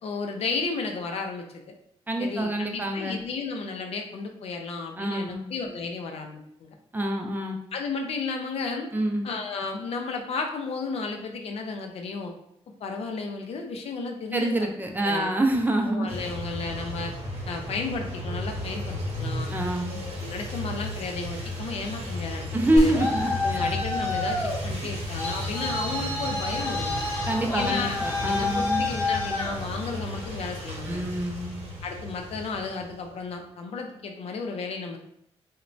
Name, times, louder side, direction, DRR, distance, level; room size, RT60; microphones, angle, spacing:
voice 1, 0.0-1.6 2.2-6.7 7.7-8.9 9.2-12.3 12.8-14.7 15.0-15.3 15.9-17.1 17.5-19.5 19.9-22.5 22.7-22.9 23.4-27.0 27.5-28.0 28.3-31.0 31.8-35.0, left 4 dB, 70° left, 3 dB, 0.4 m, -33 dB
voice 2, 2.1-3.2 5.0-5.5 6.9-7.6 8.9-9.3 14.3-16.1 19.5-20.0 22.5-23.7 27.3-28.8 30.9-31.6, right 1 dB, 20° right, 2 dB, 0.4 m, -26 dB
sound 1, 16.1-33.1, left 1 dB, 70° right, 0.7 m, -34 dB
Traffic noise roadway noise, 22.6-30.3, left 3 dB, 20° left, 0.7 m, -30 dB
sound 2, 22.8-25.1, equal, 35° right, 0.8 m, -34 dB
3.0 x 2.1 x 2.5 m, 0.75 s
cardioid pair, 95°, 11 cm